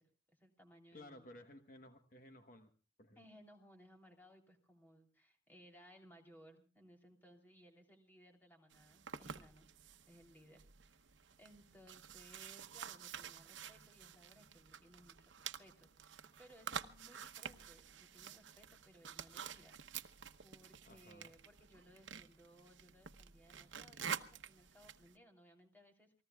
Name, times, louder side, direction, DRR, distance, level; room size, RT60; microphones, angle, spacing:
voice 1, 0.0-1.3 3.1-9.7 10.1-19.8 20.4-26.1, equal, 10° left, 2 dB, 3.3 m, -63 dB
voice 2, 0.9-2.7 3.0-3.2 20.9-21.4, left 1 dB, 45° left, 6 dB, 1.2 m, -57 dB
sound 1, 8.7-25.1, right 7 dB, 85° right, 0.9 m, -49 dB
28.5 x 19.5 x 2.3 m, 0.36 s
head